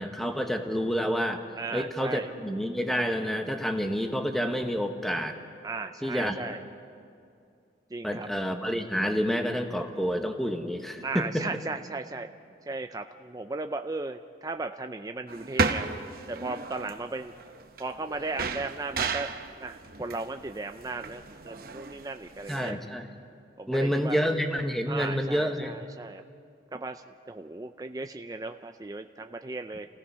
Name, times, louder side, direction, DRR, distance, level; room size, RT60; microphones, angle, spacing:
voice 1, 0.0-1.4 1.7-5.4 6.0-6.4 8.0-11.5 22.5-23.1 23.7-25.8, equal, ahead, 5 dB, 1.1 m, -28 dB
voice 2, 1.6-2.3 5.6-6.6 7.9-8.3 11.0-12.3 12.7-15.9 16.3-17.3 17.8-19.3 19.6-22.8 23.6-24.2 24.9-26.2 26.7-29.9, right 3 dB, 20° right, 6 dB, 0.4 m, -36 dB
sound 1, 15.3-22.7, right 4 dB, 55° right, 0.9 m, -34 dB
29.0 x 16.5 x 5.6 m, 2.4 s
head